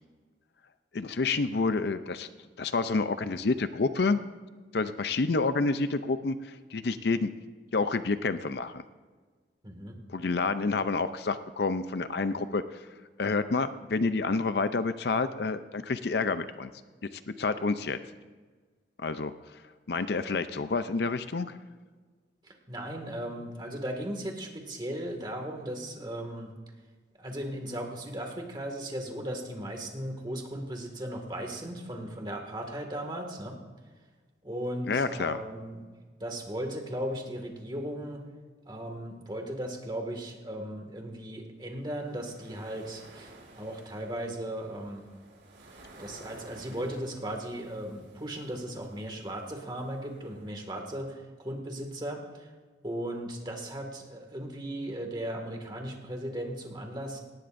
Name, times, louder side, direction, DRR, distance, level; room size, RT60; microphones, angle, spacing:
voice 1, 0.9-2.3 2.6-4.2 4.7-7.3 7.7-8.8 10.1-12.9 13.2-16.7 17.3-18.0 19.0-19.6 19.9-21.6 34.9-35.4, left 3 dB, 60° left, 11 dB, 0.5 m, -29 dB
voice 2, 9.6-10.0 22.4-26.5 27.2-33.6 34.4-35.8 36.2-38.2 38.6-45.1 46.0-52.5 52.8-57.2, right 1 dB, 25° right, 2 dB, 2.0 m, -37 dB
sound 1, 41.7-51.0, right 2 dB, 70° right, 5.1 m, -54 dB
18.5 x 16.5 x 2.6 m, 1.4 s
head